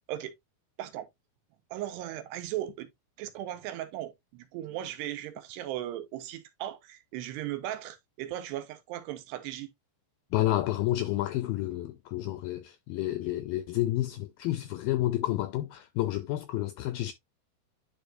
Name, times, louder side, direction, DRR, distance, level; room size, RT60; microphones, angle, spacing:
voice 1, 1.7-2.9 3.2-9.7, right 13 dB, 90° right, 3.0 m, -37 dB
voice 2, 10.3-17.1, left 15 dB, 85° left, 2.0 m, -30 dB
10.0 x 4.6 x 2.6 m
omnidirectional pair, 4.8 m